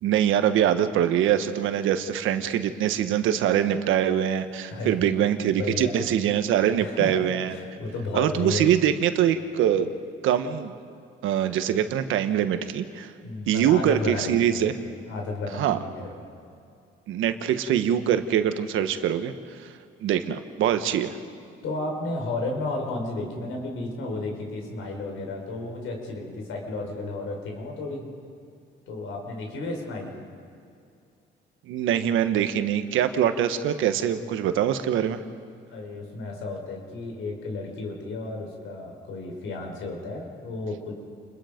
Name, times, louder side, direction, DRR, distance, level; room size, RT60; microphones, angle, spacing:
voice 1, 0.0-7.5 8.1-10.0 10.2-10.8 11.2-13.1 13.5-14.7 15.5-15.8 17.1-19.3 20.0-21.2 31.7-35.2, right 10 dB, 85° right, 9 dB, 1.3 m, -23 dB
voice 2, 4.7-5.2 5.5-5.9 6.8-7.2 7.5-8.7 13.2-14.7 15.1-16.3 21.6-28.1 28.9-30.1 35.7-40.9, left 2 dB, 85° left, 1 dB, 5.1 m, -33 dB
29.0 x 22.0 x 5.2 m, 2.5 s
cardioid pair, 90°, 20 cm